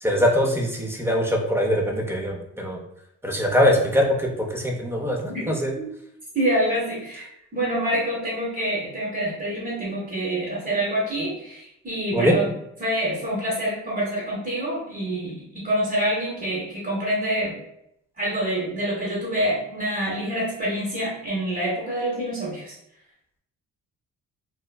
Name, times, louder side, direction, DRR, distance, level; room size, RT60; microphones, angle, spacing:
voice 1, 0.0-2.8 3.2-5.7 12.1-12.4, equal, 10° right, 0 dB, 0.5 m, -22 dB
voice 2, 6.3-12.5 12.8-17.5 18.2-22.7, right 1 dB, 30° right, -5 dB, 0.9 m, -26 dB
3.4 x 2.0 x 2.3 m, 0.75 s
cardioid pair, 90°, 30 cm